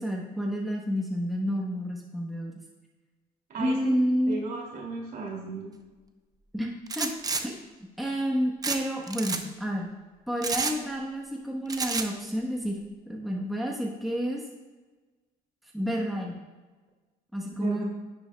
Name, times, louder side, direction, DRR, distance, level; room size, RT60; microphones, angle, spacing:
voice 1, 0.0-2.6 3.6-4.4 6.5-6.7 7.0-7.1 7.4-7.6 8.0-9.9 10.3-12.8 13.1-14.4 15.7-16.3 17.3-17.9, equal, ahead, -2 dB, 1.0 m, -29 dB
voice 2, 3.5-3.9 4.3-5.7 17.5-17.9, right 3 dB, 60° right, -1 dB, 2.5 m, -35 dB
sound 1, 6.9-7.4 8.6-8.8 9.1-9.4 10.4-10.8 11.7-12.1, right 4 dB, 20° right, 0.6 m, -29 dB
11.0 x 7.0 x 2.2 m, 1.3 s
cardioid pair, 110°, 17 cm